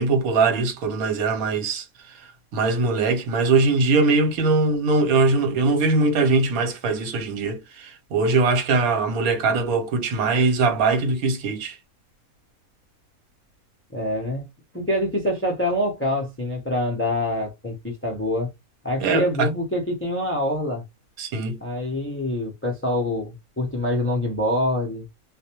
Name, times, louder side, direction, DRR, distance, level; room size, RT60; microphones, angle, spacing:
voice 1, 0.0-11.8 19.0-19.5 21.2-21.6, right 3 dB, 80° right, 1.2 m, -21 dB
voice 2, 13.9-14.5 14.7-18.5 18.8-20.8 21.6-25.0, left 1 dB, 20° left, 0.3 m, -25 dB
2.4 x 2.1 x 2.8 m
omnidirectional pair, 1.5 m